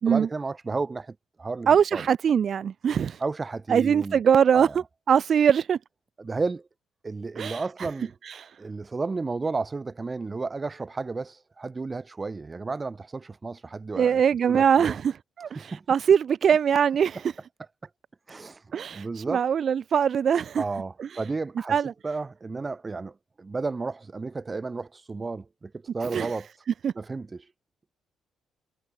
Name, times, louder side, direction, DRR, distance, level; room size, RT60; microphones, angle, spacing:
voice 1, 0.0-2.0 3.2-4.2 4.5-4.8 6.2-6.7 7.0-8.1 8.6-14.2 14.5-15.0 15.5-15.8 18.3-18.6 18.9-19.4 20.6-21.8 22.0-26.5 26.9-27.5, right 3 dB, 25° right, 1.3 m, -32 dB
voice 2, 1.7-3.2 3.7-5.8 7.4-7.6 8.2-8.6 14.0-17.3 18.7-20.6 21.0-21.1 21.7-21.9 26.0-26.4 26.8-26.9, right 7 dB, 55° right, 0.6 m, -22 dB
cardioid pair, 90°, 0 cm